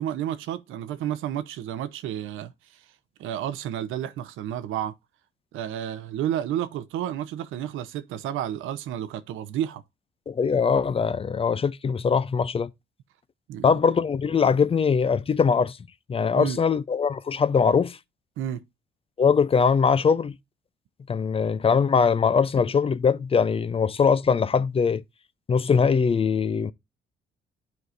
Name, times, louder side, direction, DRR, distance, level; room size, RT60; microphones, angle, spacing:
voice 1, 0.0-2.8 3.2-4.9 5.5-9.8 13.5-13.7 16.3-16.6 18.4-18.6, right 11 dB, 90° right, 0.7 m, -31 dB
voice 2, 10.3-12.7 13.6-15.8 16.1-18.0 19.2-20.3 21.1-25.0 25.5-26.7, left 6 dB, 30° left, 0.4 m, -22 dB
11.5 x 4.7 x 2.5 m
cardioid pair, 90°, 20 cm